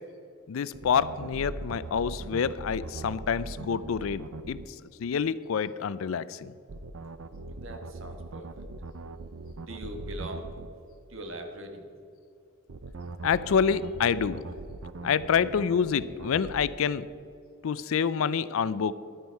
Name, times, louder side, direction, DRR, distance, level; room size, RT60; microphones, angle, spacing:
voice 1, 0.5-4.6 5.0-6.5 13.2-14.4 15.0-17.1 17.6-18.9, left 6 dB, 75° left, 17 dB, 0.4 m, -27 dB
sound 1, 0.7-4.7 6.7-10.7 12.7-16.7, right 3 dB, 80° right, 0.6 m, -40 dB
voice 2, 7.5-8.7 9.5-10.5 11.1-11.8, right 1 dB, 65° right, 4 dB, 1.4 m, -41 dB
11.0 x 9.6 x 4.6 m, 2.4 s
head